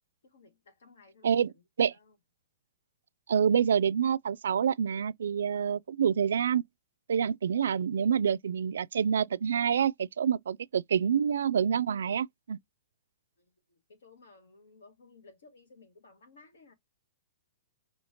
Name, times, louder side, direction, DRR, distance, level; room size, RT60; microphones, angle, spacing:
voice 1, 0.2-1.6 1.9-2.2 13.4-16.7, left 3 dB, 85° left, 1.9 m, -58 dB
voice 2, 3.3-6.6 7.1-12.6, right 7 dB, 85° right, 0.3 m, -27 dB
5.6 x 2.8 x 2.8 m
hypercardioid pair, 170°, 0 cm